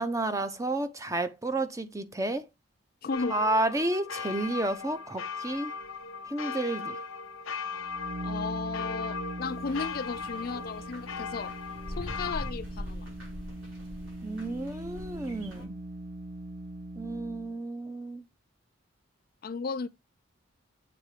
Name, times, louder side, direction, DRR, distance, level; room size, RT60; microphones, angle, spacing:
voice 1, 0.0-2.5 3.3-5.7 6.3-7.0 14.2-15.8 17.0-18.2, right 2 dB, 15° right, 0.6 m, -31 dB
voice 2, 3.0-3.4 8.2-11.5 11.9-13.1 19.4-19.9, left 4 dB, 45° left, 0.4 m, -35 dB
sound 1, 3.1-12.5, left 5 dB, 80° left, 0.9 m, -38 dB
sound 2, 7.7-17.6, right 1 dB, 45° right, 2.0 m, -41 dB
sound 3, 9.4-15.7, equal, 65° right, 5.4 m, -43 dB
7.8 x 3.8 x 4.9 m
head